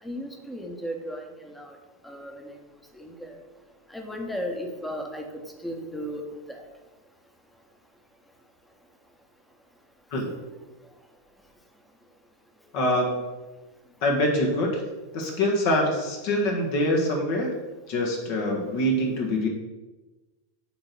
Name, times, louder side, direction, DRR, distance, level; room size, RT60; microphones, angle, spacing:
voice 1, 0.0-1.8 2.0-2.6 2.9-3.4 3.9-6.2 6.5-6.6 10.3-10.4, equal, 5° left, 4 dB, 1.2 m, -35 dB
voice 2, 12.7-13.2 14.0-14.8 15.1-17.5 17.9-19.5, left 1 dB, 45° left, 0 dB, 1.4 m, -24 dB
8.4 x 3.9 x 6.0 m, 1.2 s
figure-of-eight pair, 90°, 0 cm